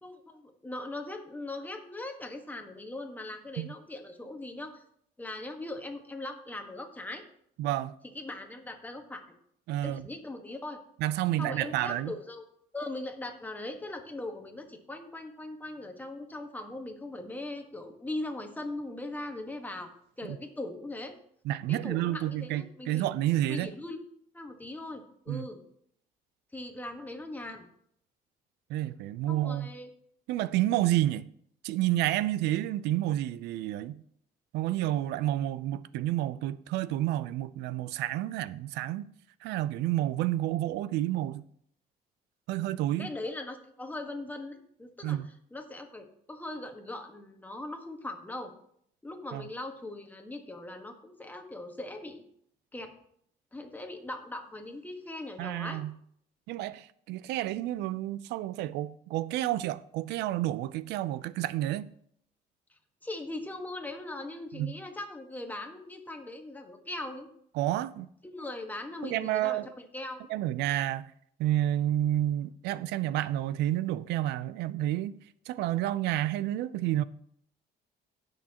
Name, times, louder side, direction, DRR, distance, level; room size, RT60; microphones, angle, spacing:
voice 1, 0.0-4.8 5.2-7.2 8.1-9.2 9.8-10.8 11.4-12.5 12.7-19.9 20.2-21.1 21.7-23.1 23.5-25.6 26.5-27.7 29.3-29.9 43.0-45.2 45.5-48.5 49.0-52.3 52.7-52.9 53.5-55.8 63.0-67.3 68.2-70.3, left 2 dB, 10° left, 1.4 m, -40 dB
voice 2, 7.6-7.9 9.7-10.1 11.0-12.1 20.2-20.4 21.5-23.7 25.3-25.4 28.7-29.7 30.3-31.3 31.6-34.0 34.5-39.1 39.4-41.5 42.5-43.1 45.0-45.3 49.3-49.4 55.4-55.9 56.5-61.9 64.5-64.8 67.6-68.1 69.0-69.7 70.3-71.1 71.4-75.2 75.5-77.0, right 14 dB, 85° right, 0.5 m, -30 dB
17.5 x 6.5 x 2.9 m
cardioid pair, 110°, 17 cm